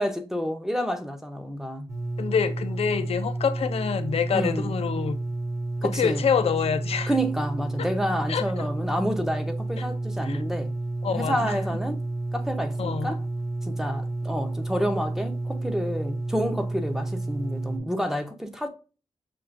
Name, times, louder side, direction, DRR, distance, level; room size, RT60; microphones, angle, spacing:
voice 1, 0.0-1.9 4.3-4.8 5.8-6.2 7.1-10.7 11.1-12.0 12.3-13.2 13.6-18.7, equal, 5° right, 0.6 m, -29 dB
sound 1, 1.9-17.8, right 2 dB, 30° right, 1.0 m, -31 dB
voice 2, 2.2-5.2 5.8-7.1 8.3-8.7 9.8-9.9 10.2-10.4 11.0-11.5 12.8-13.1, left 7 dB, 70° left, 0.5 m, -26 dB
5.8 x 2.4 x 2.4 m
wide cardioid pair, 125°, 11 cm